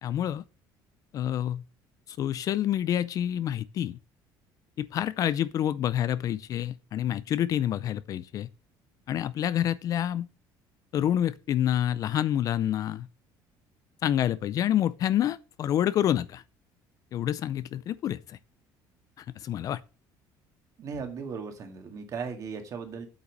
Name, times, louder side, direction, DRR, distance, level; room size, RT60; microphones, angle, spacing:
voice 1, 0.0-0.4 1.1-1.6 2.1-4.0 4.8-8.5 9.1-10.3 10.9-13.1 14.0-16.4 17.1-18.4 19.2-19.8, left 11 dB, 45° left, 0.5 m, -28 dB
voice 2, 20.8-23.1, right 5 dB, 40° right, 2.1 m, -37 dB
8.2 x 5.9 x 6.4 m
cardioid pair, 145°, 9 cm